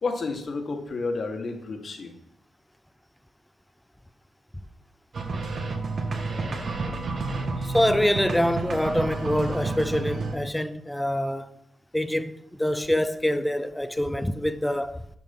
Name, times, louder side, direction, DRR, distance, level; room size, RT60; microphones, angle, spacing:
voice 1, 0.0-2.1, left 3 dB, 50° left, 1.8 m, -30 dB
sound 1, 5.1-10.3, right 3 dB, 50° right, 1.7 m, -30 dB
voice 2, 7.6-11.6 11.9-15.2, left 1 dB, 5° left, 0.7 m, -25 dB
11.0 x 5.9 x 5.5 m
cardioid pair, 90°, 0 cm